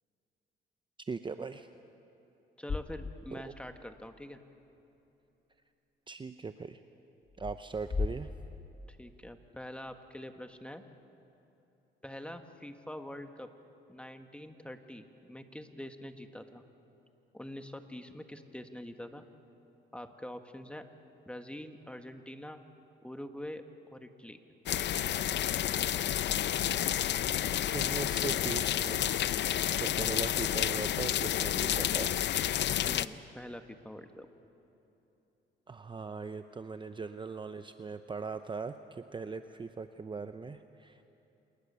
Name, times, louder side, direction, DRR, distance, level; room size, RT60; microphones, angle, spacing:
voice 1, 1.1-1.7 3.3-3.5 6.1-6.8 7.4-8.3 27.7-29.1 29.7-32.2 35.7-41.1, right 4 dB, 25° right, 9 dB, 0.7 m, -40 dB
voice 2, 2.6-4.4 8.9-10.8 12.0-13.5 13.9-16.6 17.3-19.2 19.9-20.9 21.3-22.6 23.0-23.6 23.9-24.4 32.8-34.3, left 1 dB, 5° left, 7 dB, 1.6 m, -45 dB
sound 1, 2.7-3.7 4.0-4.1 7.3-9.3, left 4 dB, 30° left, 1.3 m, -38 dB
sound 2, 24.7-33.1, left 11 dB, 60° left, 0.6 m, -30 dB
27.0 x 20.0 x 6.9 m, 2.9 s
cardioid pair, 90°, 20 cm